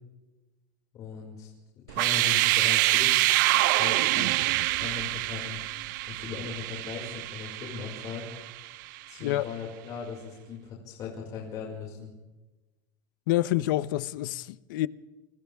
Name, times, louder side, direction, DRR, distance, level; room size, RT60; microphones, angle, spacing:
voice 1, 0.9-1.5 1.9-3.1 3.7-4.4 4.8-5.6 6.1-8.3 9.1-12.1, left 6 dB, 35° left, 5.6 m, -38 dB
sound 1, 1.9-8.8, right 18 dB, 70° right, 0.9 m, -26 dB
voice 2, 13.3-14.9, left 15 dB, 85° left, 0.8 m, -27 dB
29.5 x 25.0 x 3.6 m
cardioid pair, 165°, 10 cm